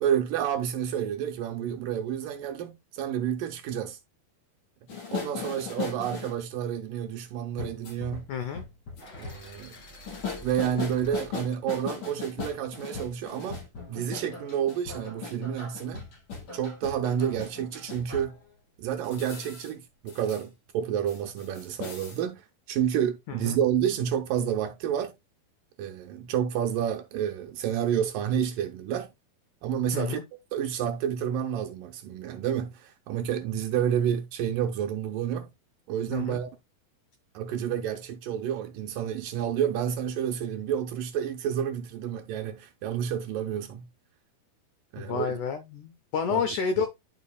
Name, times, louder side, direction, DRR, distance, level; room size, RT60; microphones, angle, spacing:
voice 1, 0.0-4.0 4.9-8.3 9.2-9.8 10.4-13.6 13.9-16.1 16.5-18.3 18.8-22.4 22.7-25.1 25.8-29.1 29.6-30.2 30.5-35.5 35.9-36.5 37.3-43.9 44.9-45.3 46.3-46.4, right 9 dB, 75° right, 2.2 m, -29 dB
sound 1, 4.9-6.4 7.6-9.4 10.1-18.4 19.0-19.7 20.1-20.4 20.7-20.8 21.1-22.2, left 5 dB, 55° left, 5.9 m, -38 dB
voice 2, 8.3-8.6 23.3-23.6 29.9-30.2 36.1-36.4 45.0-46.9, left 6 dB, 80° left, 1.8 m, -30 dB
sound 2, 9.0-13.0, equal, 40° left, 2.6 m, -49 dB
11.5 x 5.2 x 2.3 m
omnidirectional pair, 4.4 m